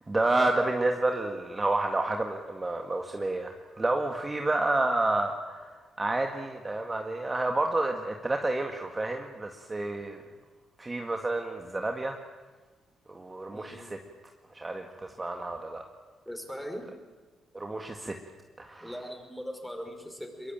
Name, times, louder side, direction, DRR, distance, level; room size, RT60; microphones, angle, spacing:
voice 1, 0.1-5.7 6.0-10.2 10.8-12.2 13.1-14.0 14.5-15.8 17.5-18.1 18.6-18.9, right 2 dB, 20° right, 3 dB, 1.9 m, -29 dB
voice 2, 13.5-13.9 16.3-16.8 18.8-20.5, equal, 5° left, 4 dB, 5.3 m, -40 dB
23.0 x 22.0 x 9.0 m, 1.3 s
cardioid pair, 90°, 0 cm